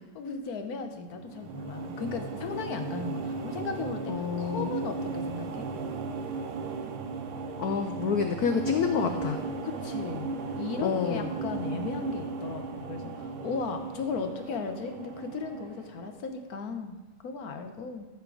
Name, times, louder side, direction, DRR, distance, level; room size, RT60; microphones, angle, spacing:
voice 1, 0.1-5.7 9.6-18.1, left 4 dB, 55° left, 6 dB, 1.1 m, -36 dB
sound 1, 1.1-16.4, right 4 dB, 85° right, 1.8 m, -36 dB
voice 2, 4.1-4.7 7.6-9.4 10.8-11.3, left 6 dB, 80° left, 6 dB, 0.8 m, -28 dB
14.0 x 5.9 x 4.9 m, 1.1 s
omnidirectional pair, 2.4 m